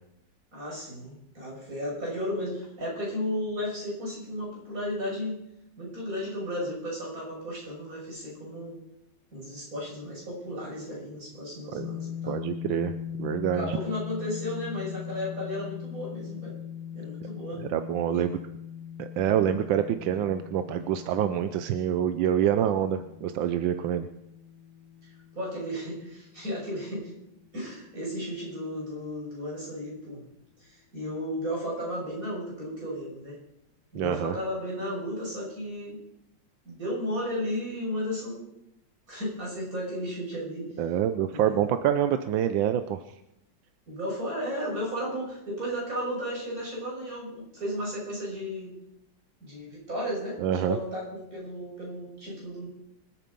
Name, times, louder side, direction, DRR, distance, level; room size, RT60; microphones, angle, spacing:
voice 1, 0.5-5.4 5.8-8.8 9.3-12.4 13.5-16.6 16.9-17.6 18.1-18.3 25.3-27.1 27.5-30.2 30.6-33.4 33.9-36.0 36.6-38.5 39.1-40.7 41.3-41.7 43.9-48.7 49.4-52.7, equal, 45° right, -3 dB, 6.6 m, -34 dB
sound 1, 11.8-27.7, left 9 dB, 75° left, 1.5 m, -41 dB
voice 2, 12.3-13.8 17.6-18.4 19.0-24.1 33.9-34.3 40.8-43.0 50.4-50.8, right 10 dB, 85° right, 9 dB, 1.5 m, -26 dB
26.0 x 8.9 x 5.3 m, 0.83 s
omnidirectional pair, 2.0 m